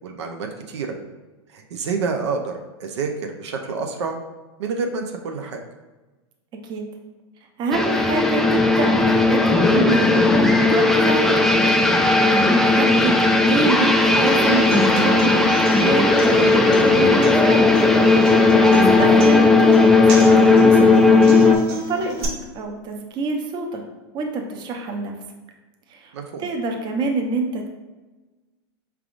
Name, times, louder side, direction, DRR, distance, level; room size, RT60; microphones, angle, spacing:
voice 1, 0.0-1.0 1.5-4.2 4.6-5.6 18.6-18.9 26.1-26.5, right 4 dB, 80° right, 3 dB, 0.6 m, -28 dB
voice 2, 7.6-11.5 11.8-13.2 13.5-17.7 18.7-23.8 24.1-25.1 25.9-27.7, right 3 dB, 30° right, 3 dB, 0.7 m, -27 dB
sound 1, 7.7-21.6, left 3 dB, 5° left, 0.3 m, -16 dB
Human voice / Acoustic guitar, 14.3-22.2, right 3 dB, 60° right, 1.2 m, -29 dB
4.8 x 3.4 x 2.5 m, 1.2 s
hypercardioid pair, 120°, 14 cm